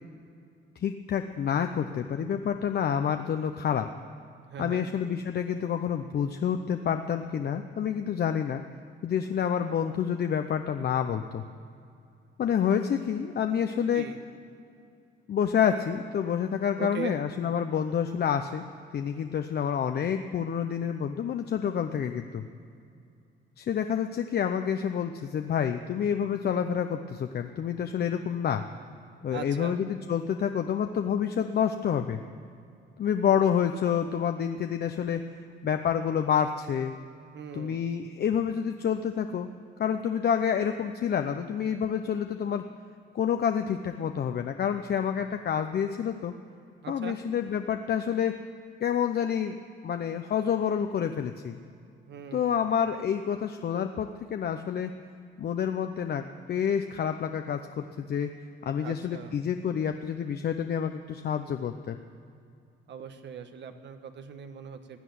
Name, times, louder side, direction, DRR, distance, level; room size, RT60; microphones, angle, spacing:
voice 1, 0.8-3.9 4.6-8.6 9.0-11.4 12.4-14.1 15.3-18.7 18.9-22.4 23.6-28.6 29.2-32.2 33.0-35.2 35.6-36.9 37.5-39.5 39.8-42.6 43.1-46.3 46.9-48.4 48.8-49.6 49.8-51.6 52.3-54.9 55.4-58.3 58.6-62.0, left 8 dB, 55° left, 7 dB, 0.7 m, -28 dB
voice 2, 4.5-4.9 13.9-14.2 16.8-17.2 29.3-29.8 37.3-37.8 46.8-47.2 52.1-52.7 58.8-59.4 62.9-65.0, right 7 dB, 65° right, 7 dB, 1.3 m, -40 dB
16.0 x 9.1 x 9.5 m, 2.5 s
cardioid pair, 90°, 20 cm